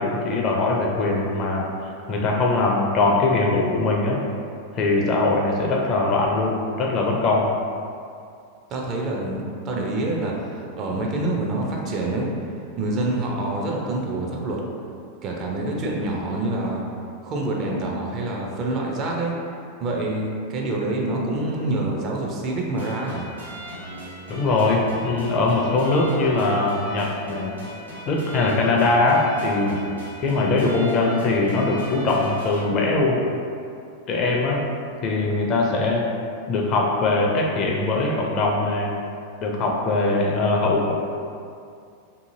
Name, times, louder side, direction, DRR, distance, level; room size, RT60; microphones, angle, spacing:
voice 1, 0.0-1.7 2.1-4.2 4.7-7.5 24.3-27.5 28.1-29.7 30.2-33.2 34.1-34.6 35.0-36.1 36.5-38.9 39.4-40.9, left 3 dB, 35° left, -1 dB, 0.4 m, -21 dB
voice 2, 8.7-12.3 12.8-14.6 15.2-16.8 17.2-19.3 19.8-23.3, right 2 dB, 35° right, -1 dB, 0.4 m, -26 dB
sound 1, 22.7-32.6, equal, 85° right, 0.7 m, -39 dB
2.7 x 2.5 x 2.5 m, 2.4 s
figure-of-eight pair, 90°, 0 cm